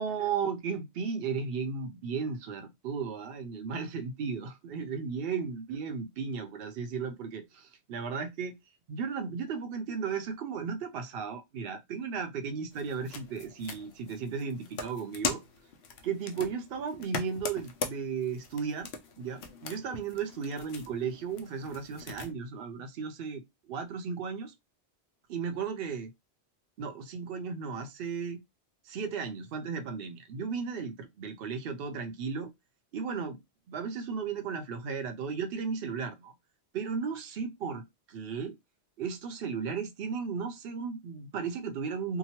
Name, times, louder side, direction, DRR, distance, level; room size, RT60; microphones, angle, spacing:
voice 1, 0.0-8.6 8.9-15.4 16.0-18.9 19.2-24.5 25.3-26.1 26.8-28.4 28.9-32.5 32.9-33.4 33.7-36.3 36.7-38.6 39.0-42.2, right 6 dB, 65° right, 0.7 m, -35 dB
sound 1, 12.7-22.3, left 5 dB, 75° left, 0.8 m, -41 dB
2.8 x 2.2 x 2.8 m
omnidirectional pair, 1.1 m